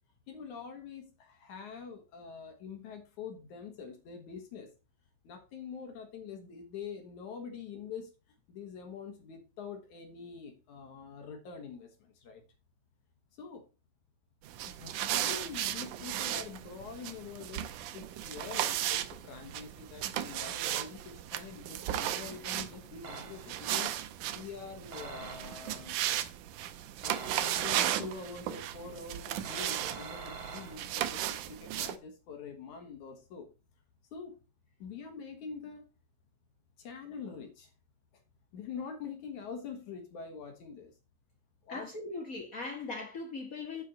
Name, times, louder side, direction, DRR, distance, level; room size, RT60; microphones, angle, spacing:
voice 1, 0.3-4.7 5.2-8.1 8.5-12.4 13.4-13.6 14.8-23.9 24.3-26.0 27.0-33.5 34.1-34.3 34.8-35.8 36.8-37.7 38.5-40.9 41.6-41.9, left 6 dB, 65° left, 2.8 m, -45 dB
sound 1, 14.4-32.0, right 12 dB, 75° right, 2.1 m, -35 dB
sound 2, 23.0-23.7 24.9-25.8 27.0-28.2 29.4-31.1, right 4 dB, 55° right, 2.6 m, -45 dB
voice 2, 41.7-43.8, left 3 dB, 80° left, 0.7 m, -39 dB
10.5 x 5.4 x 4.1 m
omnidirectional pair, 3.9 m